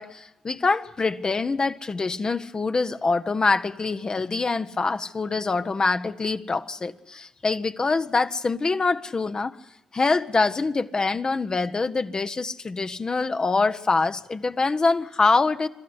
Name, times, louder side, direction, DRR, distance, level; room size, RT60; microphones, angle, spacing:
voice 1, 0.0-9.6 9.9-15.7, left 3 dB, 40° left, 9 dB, 1.0 m, -24 dB
26.0 x 13.0 x 9.6 m, 0.99 s
hypercardioid pair, 40°, 2 cm